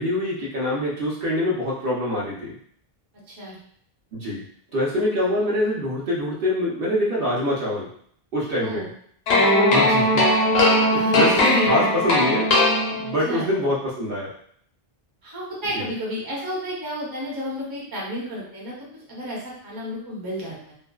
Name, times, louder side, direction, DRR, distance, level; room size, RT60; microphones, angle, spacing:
voice 1, 0.0-2.5 4.1-4.4 4.7-7.9 8.3-8.9 9.7-10.2 10.8-12.5 12.9-14.3 15.7-15.9, left 1 dB, 65° right, -5 dB, 0.9 m, -25 dB
voice 2, 8.6-8.9 10.9-11.9 13.1-13.5 15.2-20.7, equal, 25° right, -5 dB, 0.6 m, -31 dB
sound 1, 9.3-13.4, left 1 dB, 75° left, 0.8 m, -19 dB
2.5 x 2.1 x 2.3 m, 0.62 s
omnidirectional pair, 1.0 m